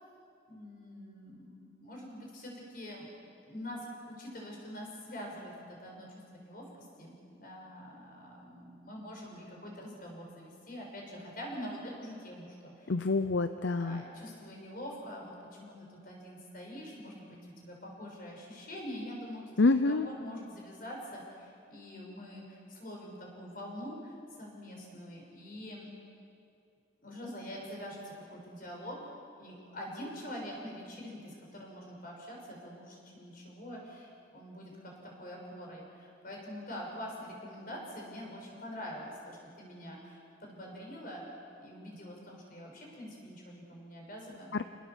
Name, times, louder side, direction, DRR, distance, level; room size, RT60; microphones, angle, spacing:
voice 1, 0.5-3.1 3.4-12.9 13.8-26.0 27.0-29.0 29.4-41.2 41.6-44.5, equal, 45° left, -1 dB, 6.5 m, -45 dB
voice 2, 12.9-14.0 19.6-20.1 44.5-44.6, left 3 dB, 70° left, 10 dB, 0.7 m, -27 dB
29.5 x 19.5 x 7.3 m, 2.5 s
head